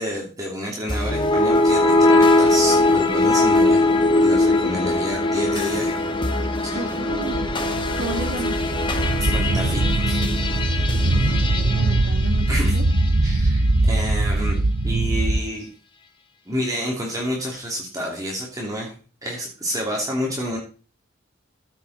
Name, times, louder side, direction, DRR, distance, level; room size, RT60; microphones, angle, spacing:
voice 1, 0.0-3.9 4.2-5.9 6.6-6.8 8.2-8.3 9.2-10.2 12.5-12.7 13.2-15.7 16.5-20.6, equal, 15° right, -2 dB, 2.8 m, -29 dB
sound 1, 0.9-13.2, left 2 dB, 25° left, 1.4 m, -21 dB
voice 2, 6.7-7.4 7.9-8.6 11.3-12.8, right 2 dB, 65° right, 1 dB, 2.6 m, -32 dB
sound 2, 7.1-15.4, right 2 dB, 85° right, 0.9 m, -21 dB
15.0 x 7.6 x 4.2 m, 0.37 s
head